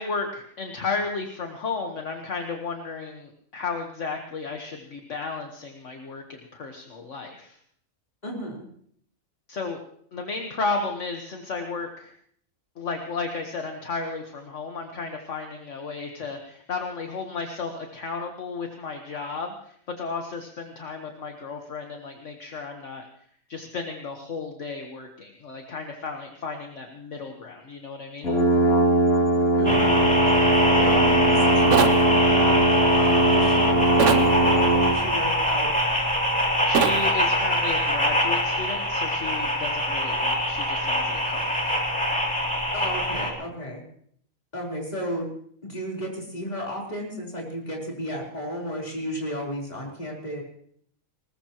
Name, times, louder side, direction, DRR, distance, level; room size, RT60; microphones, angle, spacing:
voice 1, 0.0-7.6 9.5-9.8 10.1-12.1 12.8-23.1 23.5-28.3 36.7-41.8, left 4 dB, 60° left, 3 dB, 1.6 m, -33 dB
voice 2, 8.2-8.6 29.6-30.1 30.7-35.7 42.7-43.8 44.5-45.3 45.6-50.4, equal, 30° left, -2 dB, 4.0 m, -33 dB
sound 1, 28.2-35.0, right 1 dB, 90° left, 3.0 m, -20 dB
sound 2, 29.6-43.3, equal, 5° left, 2.9 m, -24 dB
sound 3, 31.7-32.0 34.0-34.3 36.7-37.0, right 7 dB, 65° right, 1.1 m, -21 dB
20.5 x 19.5 x 3.0 m, 0.63 s
omnidirectional pair, 1.5 m